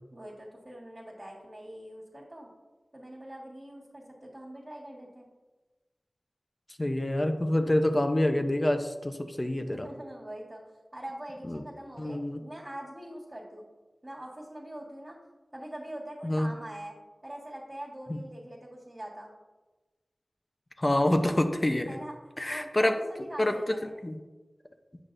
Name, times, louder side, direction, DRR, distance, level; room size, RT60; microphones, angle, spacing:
voice 1, 0.1-2.5 2.9-5.3 7.5-7.8 9.7-10.6 10.9-13.7 14.0-15.2 15.5-16.9 17.2-19.3 21.9-22.2 22.5-24.1, right 1 dB, 40° right, -6 dB, 1.6 m, -43 dB
voice 2, 6.8-9.9 11.5-11.6 12.0-12.4 16.2-16.5 18.1-18.2 20.8-21.9 22.4-22.9 23.4-23.5 24.0-24.2, left 1 dB, 30° left, 6 dB, 0.6 m, -26 dB
8.1 x 5.9 x 2.6 m, 1.2 s
wide cardioid pair, 45°, 0 cm